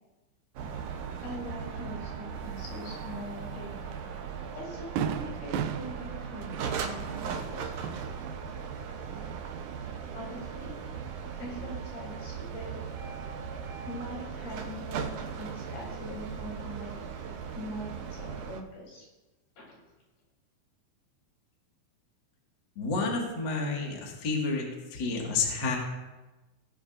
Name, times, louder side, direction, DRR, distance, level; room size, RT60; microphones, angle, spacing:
sound 1, 0.6-18.6, right 6 dB, 70° right, 2.2 m, -38 dB
voice 1, 1.2-3.8 4.5-7.6 10.1-10.8 11.4-13.0 13.9-17.0 17.5-19.1 19.6-19.7, equal, 85° left, -4 dB, 5.9 m, -42 dB
Fireworks, 3.9-4.1 4.5-4.6 5.0-8.7 9.0-9.9, right 8 dB, 90° right, 2.4 m, -36 dB
voice 2, 22.8-24.6 24.9-25.8, left 4 dB, 35° left, -2 dB, 2.2 m, -30 dB
18.0 x 10.0 x 2.6 m, 1.1 s
omnidirectional pair, 4.2 m